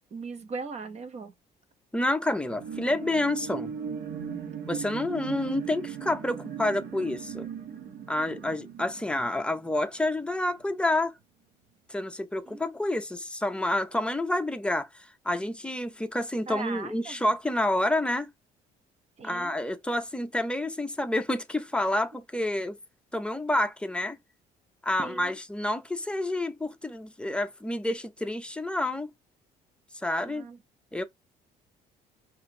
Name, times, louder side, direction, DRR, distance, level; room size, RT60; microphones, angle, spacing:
voice 1, 0.1-1.3 12.5-12.6 16.5-17.2 19.2-19.6 25.0-25.3 30.2-30.6, right 4 dB, 40° right, 1.0 m, -38 dB
voice 2, 1.9-3.7 4.7-7.5 8.1-11.1 11.9-18.3 19.2-22.8 23.1-24.2 24.8-29.1 30.0-30.4 30.9-31.0, left 1 dB, 5° left, 0.6 m, -29 dB
sound 1, 2.4-10.2 10.6-10.7, right 8 dB, 75° right, 1.1 m, -38 dB
4.8 x 2.6 x 2.8 m
cardioid pair, 110°, 17 cm